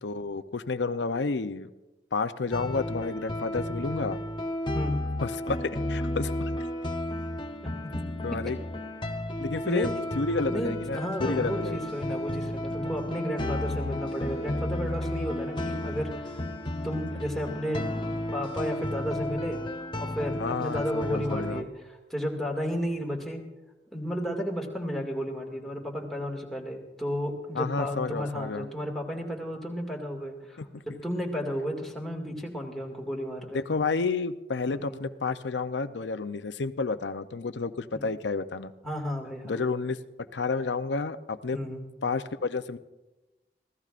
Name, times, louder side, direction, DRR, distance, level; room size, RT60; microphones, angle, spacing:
voice 1, 0.0-1.7 2.1-4.2 5.2-6.3 8.2-8.6 9.4-11.8 20.4-21.6 27.5-28.7 30.6-30.8 33.5-38.7 39.4-40.0 40.3-41.6 42.0-42.8, left 4 dB, 85° left, 11 dB, 0.6 m, -30 dB
sound 1, 2.5-21.6, left 1 dB, 25° left, 0.7 m, -33 dB
voice 2, 9.6-9.9 10.5-16.5 16.8-23.4 23.9-30.6 31.0-33.6 34.7-35.0 37.9-38.1 38.8-39.5 41.5-41.9, equal, ahead, -1 dB, 2.1 m, -33 dB
25.5 x 16.0 x 2.5 m, 1.1 s
head